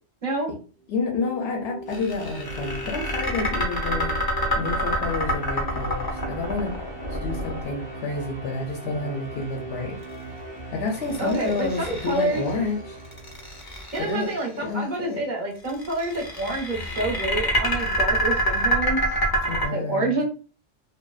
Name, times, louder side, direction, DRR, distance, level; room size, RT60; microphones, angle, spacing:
voice 1, 0.2-0.5 11.2-12.4 13.9-19.0 19.7-20.2, right 2 dB, 45° right, -1 dB, 0.7 m, -27 dB
sound 1, 0.8-13.9, right 2 dB, 10° right, 0.6 m, -38 dB
voice 2, 0.9-4.3 4.5-6.7 7.1-10.0 10.7-13.0 14.0-15.2 19.5-20.2, left 3 dB, 65° left, 1 dB, 0.7 m, -29 dB
sound 2, 1.9-8.1 10.9-12.5 13.0-14.4 15.6-19.7, equal, 40° left, 0.3 m, -26 dB
2.5 x 2.1 x 2.3 m, 0.36 s
omnidirectional pair, 1.3 m